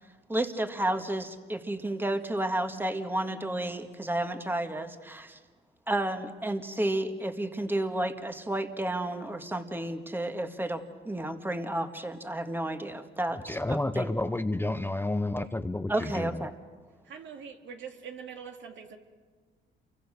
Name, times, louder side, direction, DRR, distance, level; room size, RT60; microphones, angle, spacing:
voice 1, 0.3-5.4 5.9-14.1 15.9-16.5, right 1 dB, 10° right, 7 dB, 1.7 m, -31 dB
voice 2, 13.5-16.4, left 2 dB, 10° left, 10 dB, 0.8 m, -30 dB
voice 3, 17.0-19.0, right 6 dB, 70° right, 3 dB, 2.6 m, -43 dB
28.5 x 23.5 x 6.5 m, 1.5 s
cardioid pair, 90°, 20 cm